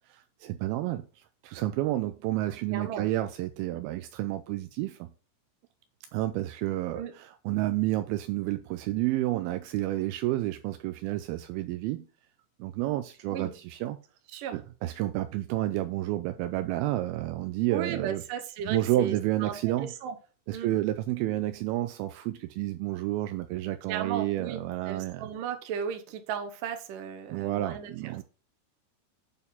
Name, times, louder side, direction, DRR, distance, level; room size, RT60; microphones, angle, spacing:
voice 1, 0.1-5.1 6.1-12.0 12.6-14.0 14.5-18.2 18.7-19.9 20.5-25.3 27.3-28.2, right 15 dB, 85° right, 2.2 m, -30 dB
voice 2, 2.7-3.1 7.0-7.1 13.3-13.5 14.3-14.6 17.7-20.2 20.5-20.7 23.9-24.6 24.9-27.9, right 8 dB, 70° right, 2.2 m, -35 dB
8.8 x 4.4 x 5.5 m
omnidirectional pair, 4.9 m